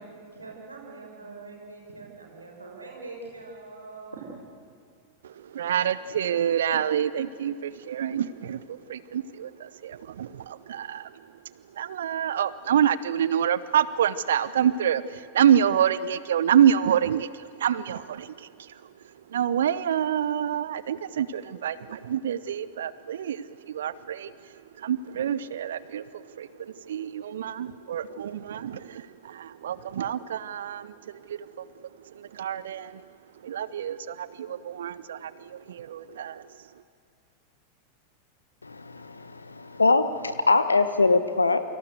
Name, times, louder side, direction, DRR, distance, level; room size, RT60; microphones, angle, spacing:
voice 1, 0.0-4.5, right 3 dB, 80° right, 0 dB, 6.1 m, -43 dB
voice 2, 5.2-11.1 11.7-18.7 19.3-33.0 33.4-36.5, right 9 dB, 60° right, 17 dB, 0.7 m, -27 dB
voice 3, 38.6-41.6, left 3 dB, 80° left, 12 dB, 1.2 m, -23 dB
29.0 x 25.0 x 8.1 m, 2.5 s
figure-of-eight pair, 90°, 0 cm